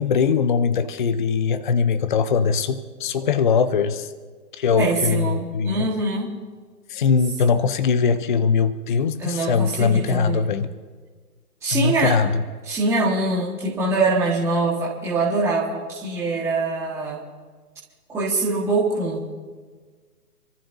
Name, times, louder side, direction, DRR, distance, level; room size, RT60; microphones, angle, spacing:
voice 1, 0.0-4.1 4.6-5.9 6.9-10.7 11.7-12.4, left 5 dB, 30° left, 11 dB, 0.7 m, -21 dB
voice 2, 4.8-6.3 9.2-10.5 11.6-12.2 12.6-17.2 18.1-19.3, right 2 dB, 5° right, -7 dB, 1.6 m, -23 dB
29.0 x 14.5 x 2.7 m, 1.5 s
hypercardioid pair, 155°, 47 cm